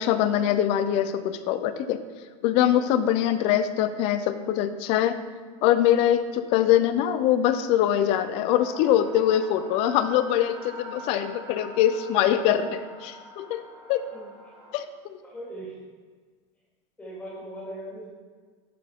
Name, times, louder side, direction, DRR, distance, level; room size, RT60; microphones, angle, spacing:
voice 1, 0.0-2.0 2.4-5.2 5.6-13.6 13.9-14.1 14.7-14.8 15.1-15.2, left 11 dB, 40° left, 11 dB, 0.4 m, -23 dB
sound 1, 8.5-14.8, right 2 dB, 85° right, 2.4 m, -44 dB
voice 2, 14.1-14.5 15.2-15.7 17.0-18.1, right 1 dB, 10° left, -7 dB, 2.2 m, -39 dB
12.0 x 4.4 x 3.6 m, 1.6 s
supercardioid pair, 165°, 15 cm